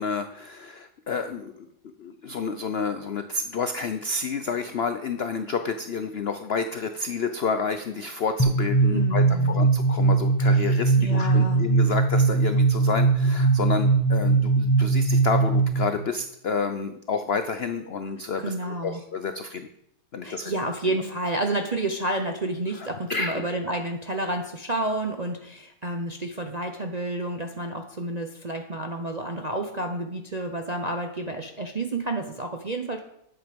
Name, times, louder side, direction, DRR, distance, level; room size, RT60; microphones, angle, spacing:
voice 1, 0.0-1.7 2.0-19.7 20.1-20.5 22.7-23.4, left 5 dB, 75° left, 8 dB, 0.5 m, -30 dB
sound 1, 8.4-16.0, right 4 dB, 15° left, 0.8 m, -21 dB
voice 2, 8.9-9.6 11.0-11.7 18.4-19.0 20.2-33.0, right 1 dB, 40° right, 4 dB, 0.5 m, -30 dB
11.0 x 8.0 x 5.2 m, 0.77 s
omnidirectional pair, 1.9 m